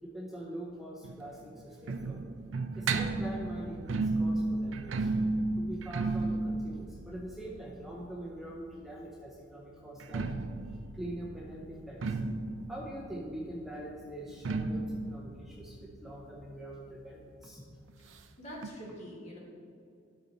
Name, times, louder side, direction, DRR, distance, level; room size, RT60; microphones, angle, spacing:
voice 1, 0.0-2.2 2.8-5.1 5.6-10.3 10.7-12.2 12.7-17.7, right 1 dB, ahead, -3 dB, 0.6 m, -43 dB
sound 1, 1.0-8.7 9.9-17.2 17.5-17.6 17.9-18.0 18.6-18.7, right 3 dB, 90° right, 0.5 m, -34 dB
voice 2, 18.1-19.4, equal, 35° left, -4 dB, 2.0 m, -45 dB
12.5 x 4.3 x 3.9 m, 2.4 s
head